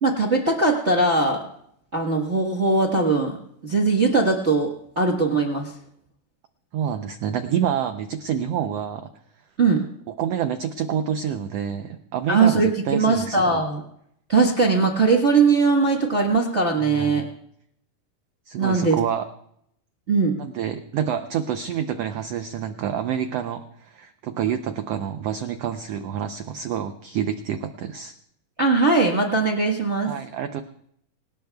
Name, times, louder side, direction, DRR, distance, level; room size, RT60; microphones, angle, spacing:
voice 1, 0.0-1.4 1.9-3.4 3.6-5.7 9.6-9.8 12.3-13.8 14.3-17.2 18.6-19.0 20.1-20.3 28.6-30.1, right 3 dB, 65° right, -1 dB, 0.6 m, -20 dB
voice 2, 6.7-9.1 10.1-13.6 16.8-17.3 18.5-19.2 20.4-28.1 30.1-30.6, right 9 dB, 90° right, 7 dB, 1.4 m, -28 dB
26.5 x 18.0 x 2.3 m, 0.72 s
omnidirectional pair, 3.8 m